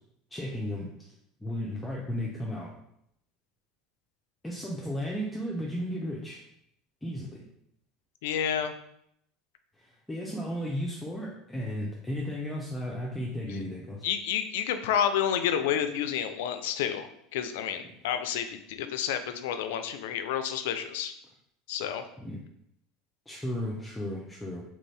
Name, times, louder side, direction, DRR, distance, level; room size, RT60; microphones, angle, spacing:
voice 1, 0.3-1.1 1.4-2.7 4.4-6.4 7.0-7.4 9.8-14.1 22.2-22.4 23.3-24.6, equal, 10° left, -3 dB, 0.6 m, -34 dB
voice 2, 8.2-8.7 14.0-21.1 21.7-22.0, left 9 dB, 80° left, 9 dB, 0.3 m, -30 dB
3.0 x 2.6 x 3.3 m, 0.75 s
supercardioid pair, 95°, 0 cm